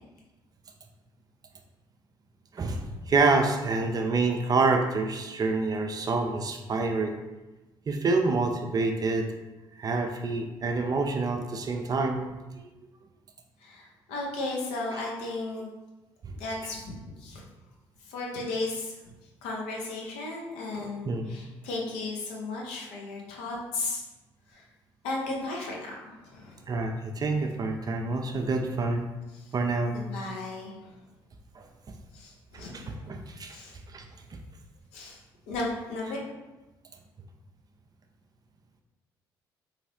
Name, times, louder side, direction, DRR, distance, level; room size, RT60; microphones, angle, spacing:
voice 1, 2.5-7.2 7.9-9.3 9.8-12.2 21.0-21.3 26.7-29.0 29.5-30.0 31.6-31.7 32.5-33.6 33.9-34.0 34.3-34.4, right 3 dB, 30° right, 4 dB, 0.5 m, -27 dB
voice 2, 13.6-15.7 16.4-17.4 18.1-18.9 19.4-24.0 24.5-24.6 25.0-26.6 29.4-29.5 29.9-30.7 32.1-32.9 33.5-33.7 34.9-35.2 35.5-36.2, left 2 dB, 65° left, -2 dB, 0.9 m, -35 dB
3.8 x 3.2 x 3.0 m, 1.1 s
figure-of-eight pair, 45°, 12 cm